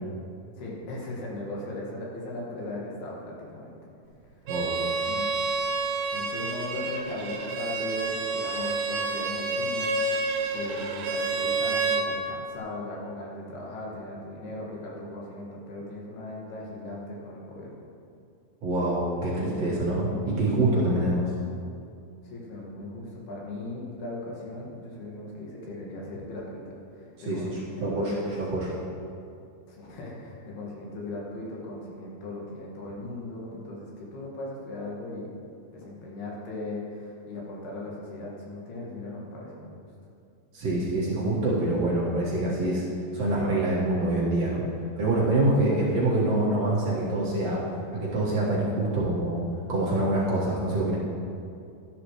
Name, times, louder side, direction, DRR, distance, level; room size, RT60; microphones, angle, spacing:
voice 1, 0.6-3.8 5.1-5.3 6.0-10.3 10.5-17.7 22.2-28.3 29.7-35.3 35.7-39.8 45.5-45.8, left 2 dB, 90° left, -3 dB, 3.8 m, -38 dB
Bowed string instrument, 4.5-12.1, right 3 dB, 80° right, 2.7 m, -29 dB
voice 2, 18.6-21.3 27.2-28.7 40.5-42.8 43.1-44.6 45.0-47.6 47.9-49.4 49.7-51.0, right 2 dB, 55° right, -6 dB, 2.2 m, -25 dB
12.5 x 11.5 x 3.2 m, 2.5 s
omnidirectional pair, 4.4 m